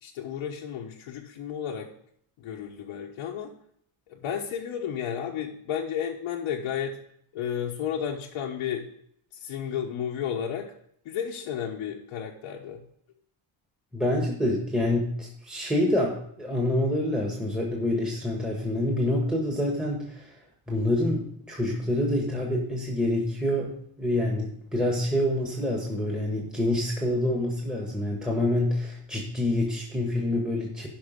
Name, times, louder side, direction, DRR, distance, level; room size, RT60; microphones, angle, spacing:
voice 1, 0.0-1.9 2.4-3.5 4.1-7.0 7.3-8.8 9.3-10.7 11.0-12.8 30.8-30.9, left 8 dB, 90° left, -1 dB, 1.2 m, -32 dB
voice 2, 13.9-20.4 20.7-23.7 24.0-30.9, left 1 dB, ahead, -2 dB, 1.5 m, -27 dB
12.0 x 5.4 x 5.2 m, 0.68 s
cardioid pair, 135°, 49 cm